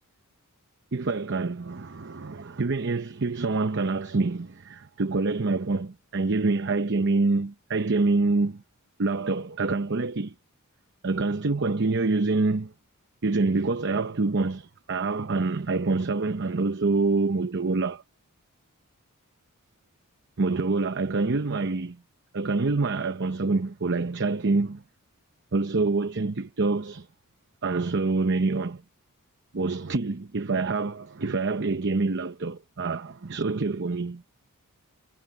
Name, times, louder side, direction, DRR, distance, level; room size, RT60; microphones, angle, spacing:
voice 1, 0.9-8.6 9.0-10.3 11.0-12.7 13.2-18.0 20.4-22.0 22.3-24.8 25.5-27.1 27.6-28.8 29.5-34.2, right 3 dB, 55° right, 0.8 m, -26 dB
head